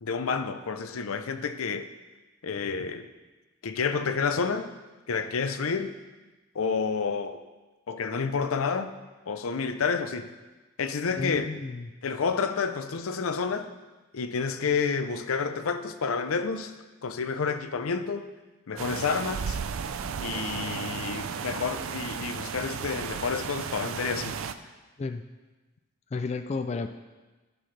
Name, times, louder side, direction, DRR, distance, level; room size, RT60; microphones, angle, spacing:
voice 1, 0.0-1.9 2.4-3.1 3.6-4.7 5.1-6.0 6.5-7.4 7.9-8.9 9.3-10.3 10.8-11.5 12.0-13.7 14.1-16.7 17.0-18.3 18.7-19.6 20.2-24.4, left 5 dB, 90° left, 9 dB, 0.6 m, -29 dB
voice 2, 11.1-11.9 25.0-25.2 26.1-26.9, left 3 dB, 30° left, 7 dB, 0.3 m, -32 dB
sound 1, 18.8-24.5, right 6 dB, 80° right, 0.4 m, -34 dB
15.0 x 6.1 x 3.3 m, 1.2 s
head